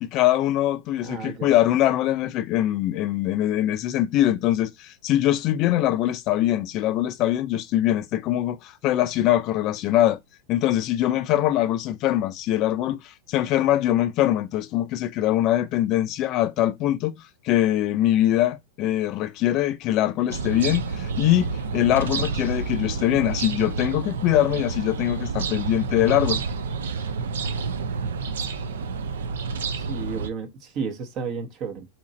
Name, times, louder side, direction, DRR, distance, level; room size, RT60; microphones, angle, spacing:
voice 1, 0.0-10.2 10.5-26.4, left 13 dB, 40° left, 0.4 m, -23 dB
voice 2, 1.0-1.5 29.7-31.9, right 5 dB, 40° right, 0.9 m, -32 dB
sound 1, 20.3-30.3, right 4 dB, 85° right, 0.5 m, -29 dB
2.8 x 2.5 x 4.1 m
hypercardioid pair, 130°, 0 cm